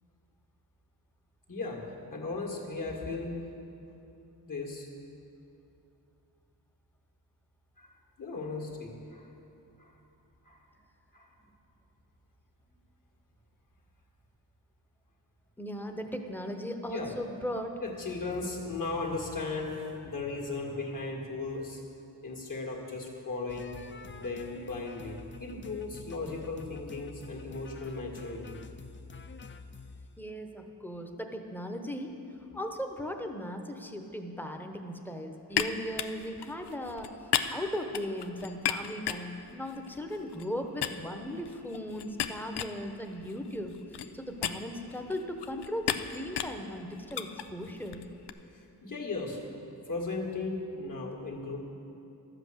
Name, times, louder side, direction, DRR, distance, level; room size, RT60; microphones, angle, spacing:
voice 1, 1.5-3.4 4.5-4.9 7.8-9.3 9.8-9.9 10.5-10.6 11.1-11.3 16.8-17.1 17.8-21.8 22.2-23.8 24.2-28.6 48.5-49.6 49.8-51.6, left 3 dB, 55° left, -1 dB, 2.0 m, -37 dB
voice 2, 15.6-17.7 30.2-32.2 32.5-37.1 37.5-48.0, equal, 5° left, 4 dB, 0.9 m, -37 dB
sound 1, 23.5-30.1, left 4 dB, 30° left, 0.5 m, -47 dB
sound 2, 35.5-40.5 40.8-48.3, left 9 dB, 90° left, 0.5 m, -36 dB
12.0 x 7.9 x 6.4 m, 2.8 s
wide cardioid pair, 85°, 39 cm